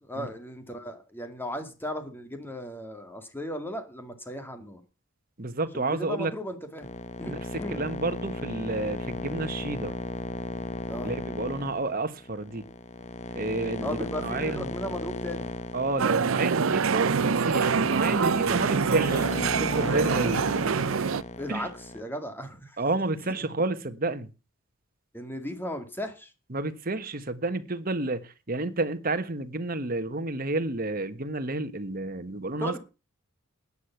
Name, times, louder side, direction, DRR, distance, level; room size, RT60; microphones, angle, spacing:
voice 1, 0.0-4.8 5.7-6.9 7.2-7.9 10.9-11.1 13.8-15.5 21.4-21.7 21.9-22.8 23.2-23.3 25.1-26.3 32.6-32.8, equal, 10° left, 2.2 m, -36 dB
voice 2, 5.4-6.3 7.2-7.4 7.7-9.9 11.0-12.7 13.3-14.7 15.7-19.2 19.6-20.4 21.5-21.7 22.8-24.3 26.5-32.8, right 2 dB, 45° right, 1.4 m, -30 dB
sound 1, 6.8-22.0, left 2 dB, 30° left, 0.9 m, -36 dB
sound 2, 16.0-21.2, right 5 dB, 70° right, 0.6 m, -25 dB
13.5 x 9.8 x 5.9 m
head